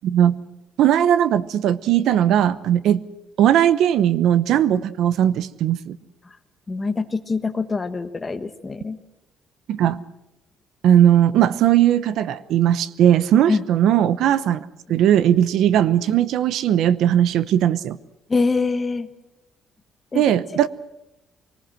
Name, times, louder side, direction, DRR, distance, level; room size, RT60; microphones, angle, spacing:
voice 1, 0.0-0.4 0.8-3.0 3.4-6.0 9.7-10.0 10.8-18.0 20.1-20.7, right 10 dB, 65° right, 16 dB, 0.9 m, -18 dB
voice 2, 6.7-9.0 13.5-13.6 18.3-19.1 20.1-20.2, left 4 dB, 20° left, 9 dB, 1.2 m, -24 dB
25.5 x 19.5 x 7.7 m, 0.92 s
cardioid pair, 175°, 0 cm